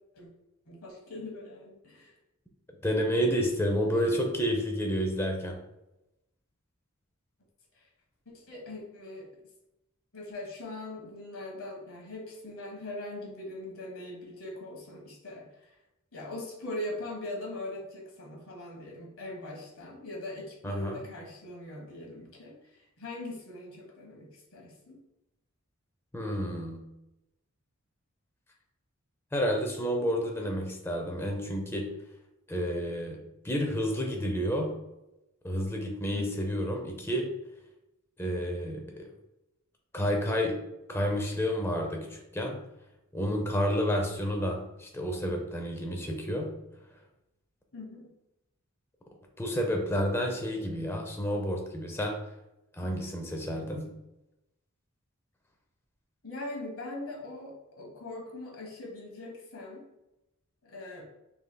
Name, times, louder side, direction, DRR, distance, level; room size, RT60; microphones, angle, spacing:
voice 1, 0.6-2.1 3.9-4.1 7.7-7.9 8.2-9.3 10.1-15.8 16.1-25.0 36.1-36.5 47.7-48.1 56.2-59.8 60.6-61.0, left 2 dB, 75° left, 0 dB, 1.3 m, -41 dB
voice 2, 2.8-5.6 20.6-21.0 26.1-26.8 29.3-31.9 32.5-33.2 33.4-34.7 35.4-37.3 38.2-39.1 39.9-40.6 40.9-42.6 43.1-46.5 49.4-52.1 52.8-53.9, equal, 10° left, 2 dB, 0.6 m, -30 dB
5.7 x 3.3 x 2.2 m, 0.92 s
head